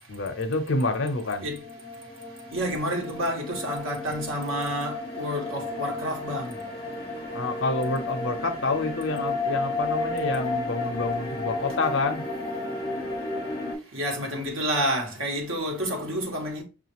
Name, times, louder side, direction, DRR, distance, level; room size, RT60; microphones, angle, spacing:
voice 1, 0.1-1.5 7.3-12.2, left 2 dB, 65° left, 0.7 m, -28 dB
sound 1, 1.4-13.7, left 2 dB, 20° left, 0.8 m, -32 dB
voice 2, 2.5-6.5 13.9-16.6, equal, 80° right, 1.1 m, -29 dB
5.6 x 2.4 x 2.9 m
head